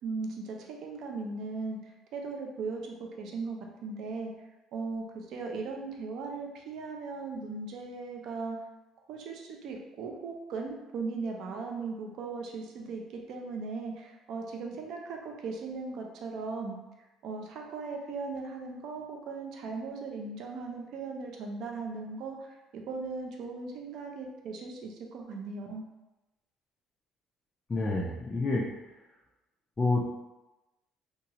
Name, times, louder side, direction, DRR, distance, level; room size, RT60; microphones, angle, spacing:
voice 1, 0.0-4.3 4.7-8.6 9.1-25.8, right 4 dB, 55° right, 1 dB, 0.4 m, -38 dB
voice 2, 27.7-28.6 29.8-30.1, left 2 dB, 15° left, -5 dB, 0.3 m, -28 dB
2.8 x 2.4 x 2.7 m, 1.0 s
cardioid pair, 180°, 0 cm